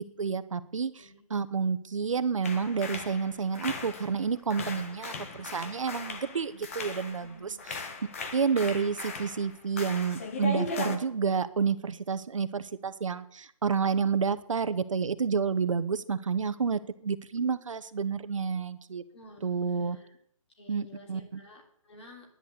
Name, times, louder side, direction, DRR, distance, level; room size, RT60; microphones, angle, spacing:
voice 1, 0.0-7.5 8.3-19.0 19.4-20.0 20.7-21.4, right 5 dB, 65° right, 13 dB, 1.2 m, -30 dB
sound 1, 2.4-4.3 4.5-7.3 7.6-11.0, left 3 dB, 25° left, 1.1 m, -38 dB
voice 2, 7.2-7.9 19.1-20.2 20.5-22.3, left 1 dB, 50° left, 0 dB, 3.3 m, -52 dB
10.5 x 9.3 x 8.1 m, 0.65 s
hypercardioid pair, 175°, 18 cm